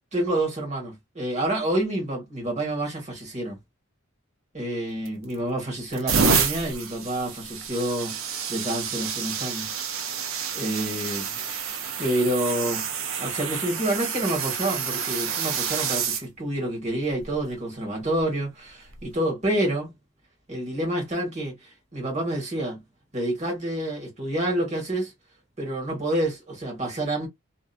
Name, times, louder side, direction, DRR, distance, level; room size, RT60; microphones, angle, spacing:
voice 1, 0.1-3.6 4.5-8.2 8.5-9.7 10.5-11.4 12.0-19.9 20.5-22.8 23.1-25.1 25.6-27.3, right 1 dB, 35° right, 1.5 m, -28 dB
sound 1, 5.1-5.4 5.9-16.2 17.1-17.4 18.9-19.0, right 6 dB, 85° right, 0.7 m, -28 dB
2.9 x 2.4 x 2.4 m
head